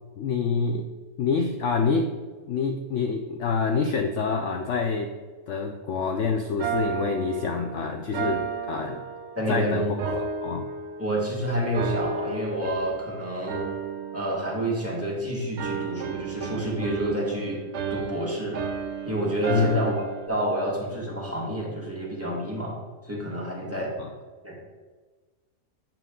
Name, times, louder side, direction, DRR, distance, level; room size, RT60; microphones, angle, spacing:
voice 1, 0.2-0.9 1.2-2.2 2.5-5.1 5.5-9.0 9.5-9.9 10.4-10.7 19.5-19.9 24.0-24.1, left 5 dB, 65° left, 5 dB, 0.8 m, -26 dB
sound 1, 6.6-9.5 10.0-11.3 11.7-13.1 13.5-15.2 15.6-20.3, right 6 dB, 60° right, 0.8 m, -33 dB
voice 2, 9.3-10.2 11.0-13.6 14.1-17.6 17.9-18.6 19.0-22.8 23.0-23.9 24.4-24.6, right 1 dB, 10° right, -3 dB, 1.7 m, -29 dB
8.8 x 6.0 x 3.7 m, 1.4 s
omnidirectional pair, 1.6 m